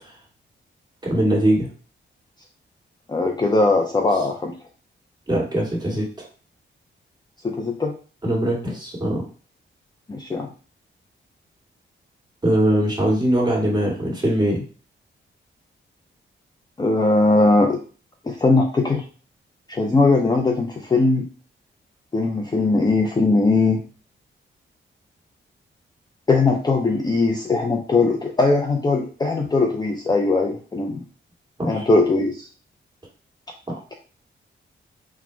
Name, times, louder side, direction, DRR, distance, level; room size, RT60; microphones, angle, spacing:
voice 1, 1.0-1.7 5.3-6.1 8.2-9.2 12.4-14.6 31.6-31.9 33.7-33.8, right 1 dB, 20° right, -3 dB, 1.8 m, -21 dB
voice 2, 3.1-4.5 7.4-7.9 10.1-10.5 16.8-17.8 18.3-19.0 19.7-21.3 22.1-23.8 26.3-31.0 31.7-32.4, left 3 dB, 20° left, 2 dB, 0.5 m, -20 dB
4.1 x 2.2 x 4.5 m, 0.38 s
wide cardioid pair, 120°, 20 cm